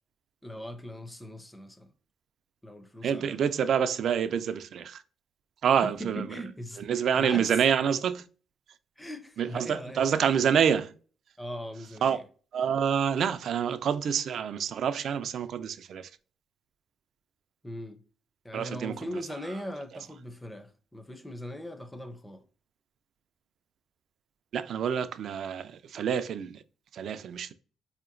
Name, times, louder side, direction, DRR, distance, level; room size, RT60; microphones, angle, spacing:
voice 1, 0.4-1.9 2.6-3.4 5.6-6.9 7.1-7.5 9.0-10.0 11.4-12.2 17.6-18.0 18.4-22.4, equal, 10° left, 0.5 m, -40 dB
voice 2, 3.0-5.0 5.6-6.4 6.8-8.3 9.4-10.9 12.0-12.2 12.5-16.1 18.5-19.5 24.5-26.6 26.9-27.5, right 8 dB, 65° right, 0.3 m, -27 dB
4.1 x 2.8 x 2.5 m
cardioid pair, 90°, 0 cm